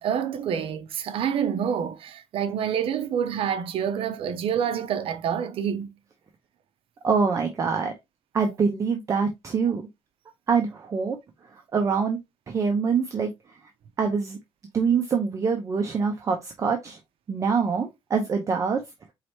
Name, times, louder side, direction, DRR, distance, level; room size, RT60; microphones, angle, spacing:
voice 1, 0.0-5.9, right 8 dB, 60° right, 0.6 m, -27 dB
voice 2, 7.0-7.9 8.3-9.9 10.5-11.2 11.5-12.2 12.5-13.5 14.0-14.4 14.7-17.0 17.3-18.8, right 5 dB, 30° right, 0.7 m, -25 dB
4.8 x 3.2 x 2.9 m
cardioid pair, 175°, 10 cm